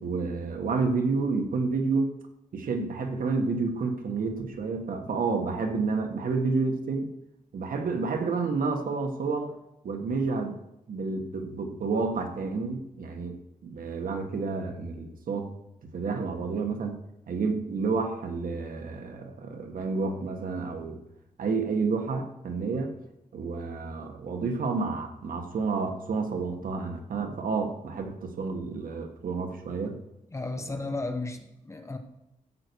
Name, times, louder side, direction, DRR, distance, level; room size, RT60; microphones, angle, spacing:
voice 1, 0.0-2.1 2.5-7.1 7.5-9.5 9.8-10.6 10.9-13.4 13.6-15.5 15.9-17.0 17.3-21.0 21.4-22.9 23.3-30.0, right 4 dB, 75° right, 4 dB, 1.6 m, -30 dB
voice 2, 30.3-32.0, left 2 dB, 20° left, 6 dB, 0.9 m, -34 dB
13.5 x 8.1 x 4.7 m, 0.88 s
wide cardioid pair, 175°, 14 cm